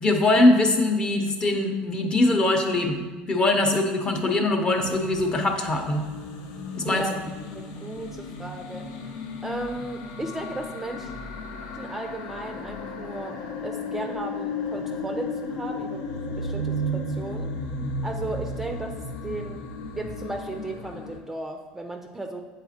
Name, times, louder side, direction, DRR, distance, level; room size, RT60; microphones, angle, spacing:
voice 1, 0.0-6.1 6.8-7.0, left 2 dB, 25° left, 4 dB, 0.8 m, -22 dB
sound 1, 4.8-21.2, left 1 dB, 75° left, 0.7 m, -34 dB
voice 2, 6.8-7.2 7.5-9.1 9.4-11.1 11.7-16.0 16.4-17.5 18.0-19.7 19.9-22.4, right 2 dB, 10° right, 3 dB, 0.4 m, -35 dB
8.1 x 4.1 x 2.8 m, 1.4 s
supercardioid pair, 115°, 3 cm